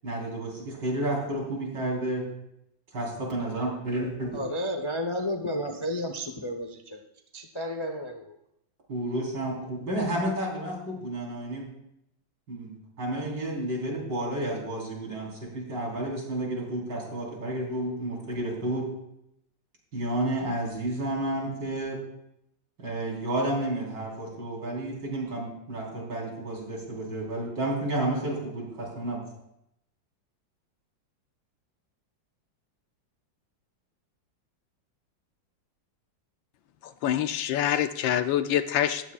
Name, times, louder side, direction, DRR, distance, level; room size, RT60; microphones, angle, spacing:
voice 1, 0.0-2.2 2.9-4.3 8.9-11.7 12.5-12.7 13.0-18.9 19.9-22.0 22.8-29.2, right 1 dB, 60° right, -3 dB, 5.0 m, -31 dB
voice 2, 4.3-7.0 7.3-8.4, equal, 30° left, 4 dB, 0.5 m, -32 dB
voice 3, 36.8-39.1, left 11 dB, 75° left, 10 dB, 1.4 m, -26 dB
18.5 x 15.0 x 2.5 m, 0.80 s
omnidirectional pair, 2.1 m